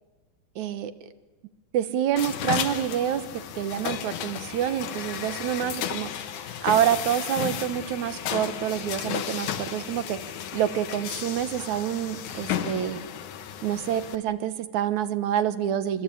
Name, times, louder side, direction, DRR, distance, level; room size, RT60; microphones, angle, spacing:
voice 1, 0.6-0.9 1.7-3.2 3.6-6.1 6.6-10.2 10.5-13.0 13.6-16.0, right 10 dB, 70° right, 12 dB, 2.4 m, -27 dB
sound 1, 2.2-14.2, left 9 dB, 75° left, 2.8 m, -33 dB
24.5 x 24.0 x 8.6 m, 1.2 s
omnidirectional pair, 3.6 m